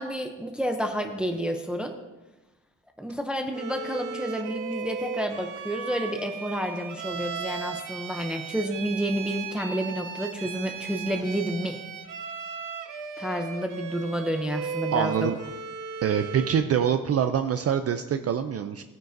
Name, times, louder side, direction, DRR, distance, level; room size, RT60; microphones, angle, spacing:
voice 1, 0.0-2.0 3.0-11.8 13.2-15.3, equal, 5° right, 4 dB, 0.6 m, -30 dB
Bowed string instrument, 3.5-16.7, right 6 dB, 70° right, 1.0 m, -36 dB
voice 2, 14.9-15.4 16.0-18.8, right 8 dB, 50° right, 8 dB, 0.5 m, -25 dB
16.0 x 9.2 x 2.6 m, 1.1 s
wide cardioid pair, 145°, 32 cm